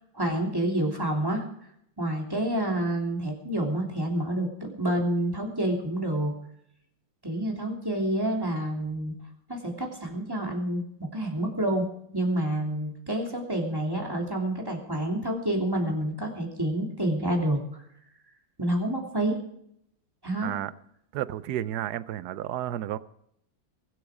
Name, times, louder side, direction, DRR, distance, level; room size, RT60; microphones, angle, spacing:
voice 1, 0.0-1.4 2.0-6.3 7.2-9.1 9.5-11.9 12.1-17.6 18.6-19.4 20.2-20.5, right 1 dB, 10° right, 3.0 m, -28 dB
voice 2, 21.1-23.0, right 12 dB, 65° right, 1.1 m, -31 dB
23.0 x 8.2 x 5.0 m
omnidirectional pair, 2.1 m